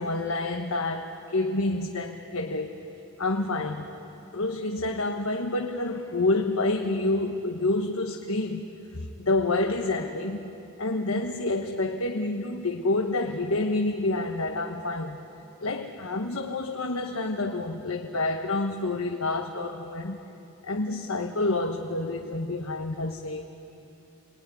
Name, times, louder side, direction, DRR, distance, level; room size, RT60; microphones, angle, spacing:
voice 1, 0.0-2.9 3.2-4.0 4.3-10.5 10.8-15.2 15.6-20.3 20.6-23.5, left 2 dB, 85° left, 3 dB, 1.3 m, -28 dB
28.0 x 21.0 x 9.8 m, 2.9 s
head